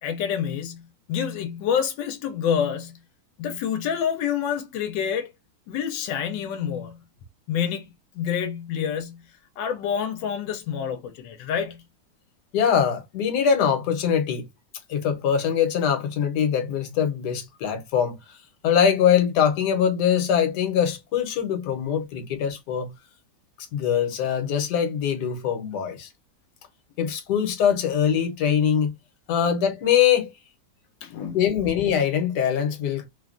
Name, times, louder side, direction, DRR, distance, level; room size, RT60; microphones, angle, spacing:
voice 1, 0.0-3.0 3.4-5.3 5.7-7.0 7.5-9.2 9.6-11.8 31.0-31.4, left 8 dB, 90° left, 1.3 m, -28 dB
voice 2, 12.5-14.5 14.9-18.4 18.6-22.9 23.7-26.1 27.0-28.9 29.3-30.3 31.3-33.1, left 8 dB, 70° left, 1.3 m, -23 dB
3.3 x 2.2 x 2.4 m
omnidirectional pair, 1.9 m